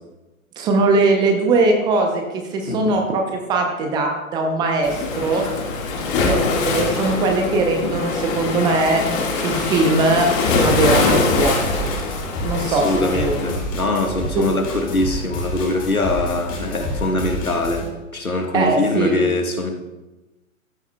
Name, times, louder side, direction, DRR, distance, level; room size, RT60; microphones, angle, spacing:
voice 1, 0.6-5.5 6.2-9.0 9.4-11.6 12.4-12.9 13.1-13.4 18.5-19.1, right 3 dB, 10° right, 3 dB, 0.6 m, -20 dB
voice 2, 2.7-3.0 12.7-19.7, left 2 dB, 90° left, 4 dB, 1.5 m, -23 dB
Waves surf, 4.8-13.6, left 3 dB, 40° left, 1.7 m, -23 dB
sound 1, 10.5-17.9, equal, 20° left, 2.1 m, -29 dB
14.0 x 9.2 x 2.2 m, 1.1 s
figure-of-eight pair, 120°, 41 cm